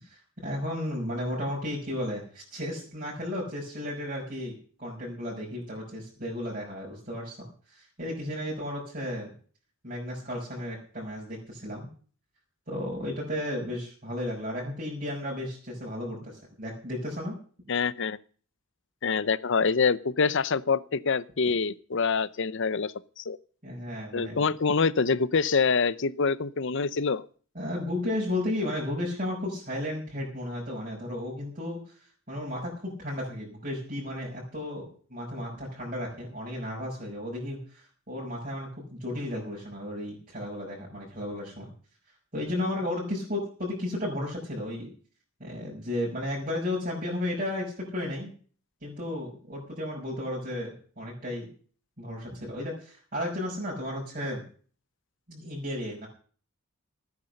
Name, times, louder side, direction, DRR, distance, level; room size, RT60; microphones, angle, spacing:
voice 1, 0.0-4.5 4.8-7.4 7.7-9.3 9.8-11.9 12.7-17.3 23.6-24.4 27.5-31.9 32.3-41.7 42.3-44.9 45.4-48.3 48.8-51.5 52.0-54.4 55.3-56.1, left 1 dB, 45° right, -4 dB, 5.7 m, -34 dB
voice 2, 17.7-18.2 19.0-23.4 24.1-27.2, left 5 dB, 65° left, 18 dB, 0.7 m, -26 dB
16.5 x 9.7 x 6.6 m, 0.43 s
head